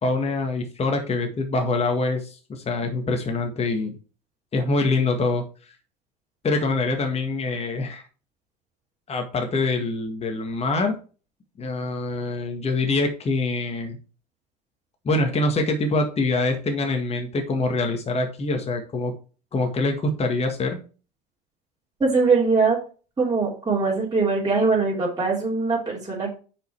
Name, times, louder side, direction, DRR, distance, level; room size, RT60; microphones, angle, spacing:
voice 1, 0.0-4.0 4.5-5.4 6.4-8.0 9.1-11.0 11.6-14.0 15.1-19.1 19.5-20.8, left 2 dB, 30° left, 4 dB, 1.8 m, -24 dB
voice 2, 22.0-22.8 23.2-26.4, right 4 dB, 20° right, -5 dB, 3.2 m, -22 dB
6.4 x 5.5 x 4.5 m, 0.35 s
hypercardioid pair, 85°, 21 cm